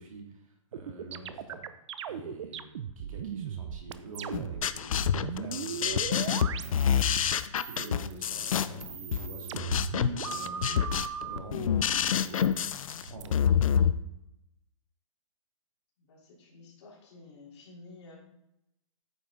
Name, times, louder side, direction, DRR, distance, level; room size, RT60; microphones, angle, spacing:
voice 1, 0.0-1.7 2.1-2.7 3.0-7.0 7.6-12.6 13.0-13.8, right 3 dB, 80° right, 2 dB, 2.1 m, -46 dB
sound 1, 0.7-4.7 4.9-7.3 7.6-8.2 8.7-11.4 12.1-13.3, right 8 dB, 60° right, 0.6 m, -38 dB
sound 2, 4.3-13.9, left 8 dB, 80° left, 0.5 m, -27 dB
voice 2, 16.0-18.2, left 3 dB, 55° left, -4 dB, 3.4 m, -51 dB
9.1 x 5.9 x 3.8 m, 0.86 s
hypercardioid pair, 155°, 17 cm